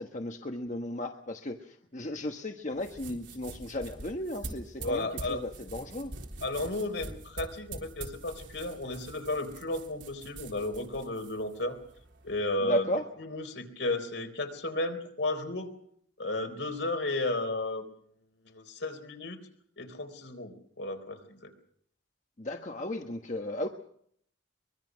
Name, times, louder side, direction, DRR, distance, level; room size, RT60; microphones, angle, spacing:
voice 1, 0.0-6.1 12.6-13.0 22.4-23.7, left 1 dB, 40° left, 4 dB, 1.4 m, -35 dB
sound 1, 2.7-12.4, right 2 dB, 80° right, 3.7 m, -45 dB
voice 2, 4.8-5.4 6.4-11.8 12.2-12.9 13.2-15.7 16.2-17.9 18.5-19.4 19.8-21.5, left 2 dB, 70° left, 6 dB, 3.9 m, -33 dB
23.5 x 23.0 x 6.3 m, 0.65 s
head